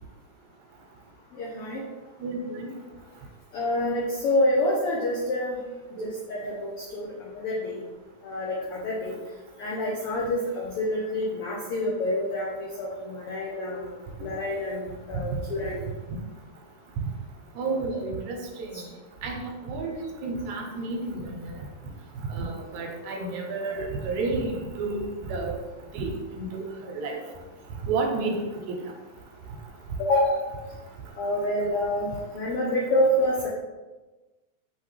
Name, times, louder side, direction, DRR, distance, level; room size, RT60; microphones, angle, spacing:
voice 1, 1.3-1.8 3.5-5.6 6.0-6.7 6.9-7.8 8.2-9.1 9.6-15.8 18.7-18.8 30.0-30.4 31.2-32.1 32.3-33.5, left 1 dB, 85° left, -4 dB, 1.2 m, -27 dB
voice 2, 2.2-2.7 6.0-6.1 17.6-18.7 19.2-21.4 22.3-25.0 25.3-25.5 25.9-27.1 27.9-28.8, right 3 dB, 80° right, 2 dB, 2.0 m, -31 dB
5.5 x 2.8 x 3.2 m, 1.2 s
omnidirectional pair, 3.4 m